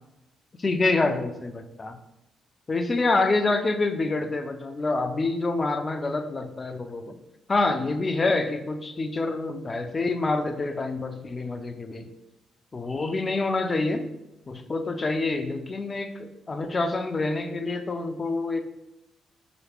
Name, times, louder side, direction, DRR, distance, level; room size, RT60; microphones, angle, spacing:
voice 1, 0.6-2.0 2.7-7.2 7.5-12.1 12.7-14.1 14.5-18.6, left 3 dB, 30° left, 8 dB, 0.5 m, -27 dB
4.8 x 3.1 x 3.0 m, 0.91 s
figure-of-eight pair, 40°, 0 cm